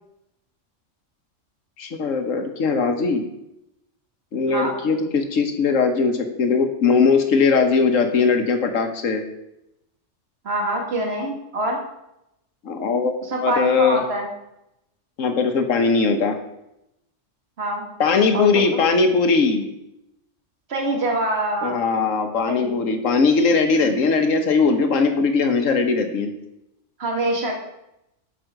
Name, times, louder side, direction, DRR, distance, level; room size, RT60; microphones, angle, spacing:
voice 1, 1.8-3.2 4.3-9.2 12.6-13.1 13.4-14.0 15.2-16.4 18.0-19.7 21.6-26.3, left 4 dB, 85° left, 6 dB, 1.4 m, -20 dB
voice 2, 10.4-11.8 13.2-14.3 17.6-17.9 18.3-18.8 20.7-21.8 22.5-22.9 27.0-27.6, right 1 dB, 55° right, 0 dB, 2.0 m, -25 dB
9.3 x 5.0 x 6.5 m, 0.85 s
omnidirectional pair, 1.3 m